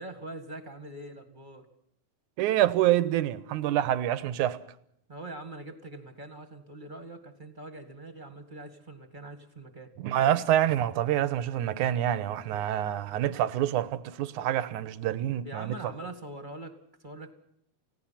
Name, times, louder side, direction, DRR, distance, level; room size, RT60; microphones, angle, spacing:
voice 1, 0.0-1.7 5.1-9.9 15.4-17.3, right 2 dB, 20° right, 1.8 m, -43 dB
voice 2, 2.4-4.6 10.0-15.8, right 12 dB, 90° right, 2.5 m, -27 dB
29.5 x 17.0 x 5.8 m
omnidirectional pair, 3.4 m